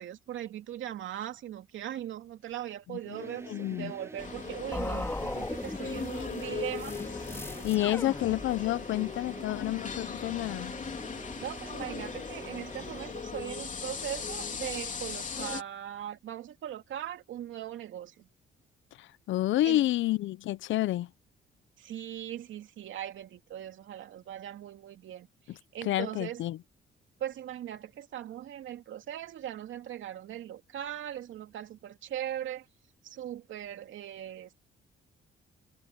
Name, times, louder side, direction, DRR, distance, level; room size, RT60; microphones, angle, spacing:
voice 1, 0.0-7.0 11.4-18.3 19.6-19.8 21.8-26.4 27.2-32.6 33.0-34.5, right 11 dB, 75° right, 2.7 m, -39 dB
sound 1, 3.0-13.3, right 2 dB, 15° right, 1.1 m, -47 dB
voice 2, 3.5-3.9 7.6-10.7 19.0-21.1 25.5-25.6 25.8-26.6, left 15 dB, 75° left, 0.6 m, -29 dB
sound 2, 4.2-15.6, left 5 dB, 40° left, 3.5 m, -39 dB
sound 3, 4.7-8.8, left 2 dB, 10° left, 2.5 m, -38 dB
cardioid pair, 90°, 20 cm